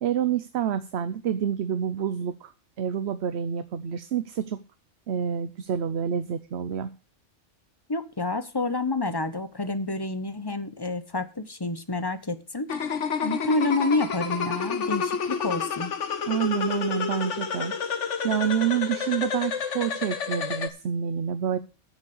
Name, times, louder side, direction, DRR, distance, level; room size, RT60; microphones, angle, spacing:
voice 1, 0.0-2.5 2.8-4.6 5.1-6.9 16.3-21.6, right 8 dB, 65° right, 12 dB, 1.0 m, -28 dB
voice 2, 7.9-12.7 13.2-15.9, left 2 dB, 20° left, 11 dB, 0.9 m, -28 dB
Vocal Chop Riser, 12.7-20.7, left 6 dB, 75° left, 1.5 m, -29 dB
9.9 x 7.3 x 8.0 m, 0.34 s
omnidirectional pair, 1.2 m